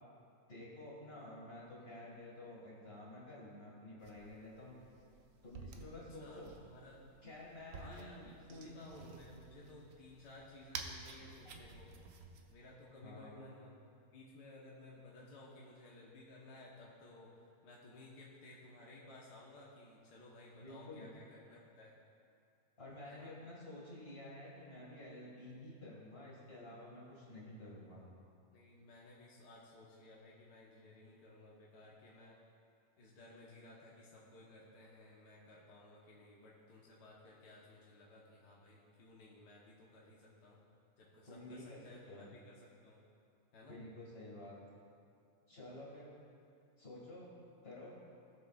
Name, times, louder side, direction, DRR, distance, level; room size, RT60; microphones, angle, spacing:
voice 1, 0.5-4.8 5.4-6.5 7.2-8.8 11.4-11.6 13.0-13.5 20.5-21.1 22.8-28.1 41.3-41.8 42.1-42.3 43.7-44.6 45.5-46.1 46.8-47.3 47.6-48.0, left 1 dB, 35° left, -6 dB, 2.1 m, -51 dB
sound 1, 4.0-12.5, right 5 dB, 80° right, 1.3 m, -52 dB
voice 2, 6.2-7.0 7.8-11.9 12.5-13.8 14.1-22.0 23.0-23.3 28.5-32.4 33.0-40.6 41.0-43.0 43.5-43.8, left 2 dB, 75° left, -4 dB, 1.6 m, -57 dB
18.5 x 6.5 x 2.4 m, 2.4 s
omnidirectional pair, 1.8 m